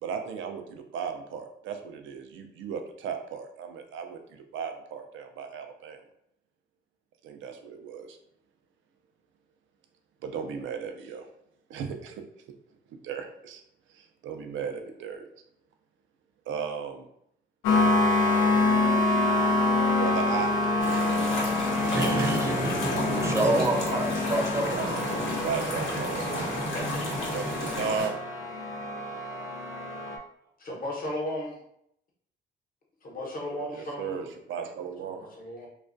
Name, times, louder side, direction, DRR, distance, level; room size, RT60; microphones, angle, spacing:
voice 1, 0.0-6.0 7.2-8.2 10.2-11.3 11.7-12.2 12.9-13.6 13.9-15.2 16.5-17.1 19.9-20.5 21.6-22.3 24.6-24.9 25.3-26.5 27.3-28.1 33.7-35.3, right 6 dB, 75° right, 5 dB, 0.4 m, -35 dB
sound 1, 17.6-30.2, left 2 dB, 90° left, 0.4 m, -27 dB
sound 2, 20.8-28.1, left 2 dB, 75° left, 0.9 m, -33 dB
voice 2, 21.9-27.7, right 2 dB, 15° right, 2 dB, 0.4 m, -30 dB
voice 3, 30.6-31.6 33.0-34.3 34.5-34.6 35.0-35.7, left 1 dB, 45° left, -2 dB, 0.9 m, -35 dB
2.3 x 2.1 x 2.5 m, 0.73 s
cardioid pair, 90°, 20 cm